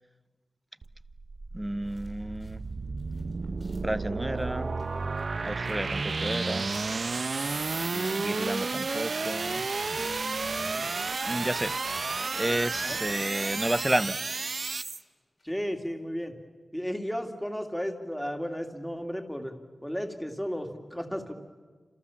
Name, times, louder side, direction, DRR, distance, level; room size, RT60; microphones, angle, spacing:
sound 1, 0.8-15.0, right 4 dB, 55° right, 0.9 m, -32 dB
voice 1, 1.5-2.6 3.8-4.7 5.4-6.7 7.9-10.9 11.3-11.7 12.4-14.2, right 1 dB, 10° right, 15 dB, 0.8 m, -32 dB
sound 2, 1.8-12.7 13.0-15.0 15.4-15.5 15.8-15.9, left 2 dB, 45° left, 6.4 m, -55 dB
voice 2, 15.4-16.3 16.7-19.5 19.8-21.3, equal, 5° left, 5 dB, 2.6 m, -33 dB
30.0 x 27.0 x 7.2 m, 1.4 s
wide cardioid pair, 105°, 0 cm